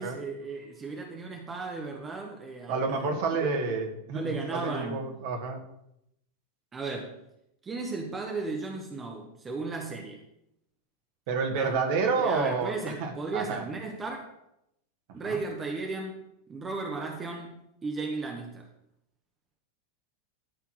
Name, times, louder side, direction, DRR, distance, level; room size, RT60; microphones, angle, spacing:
voice 1, 0.0-3.5 4.1-5.1 6.7-7.2 7.6-10.2 11.5-14.3 15.1-16.2 16.5-18.7, right 3 dB, 20° right, 2 dB, 1.5 m, -35 dB
voice 2, 2.7-5.6 11.3-12.7 13.0-13.6 15.2-15.4, right 4 dB, 50° right, 3 dB, 2.0 m, -29 dB
13.0 x 4.5 x 6.4 m, 0.80 s
figure-of-eight pair, 90°, 0 cm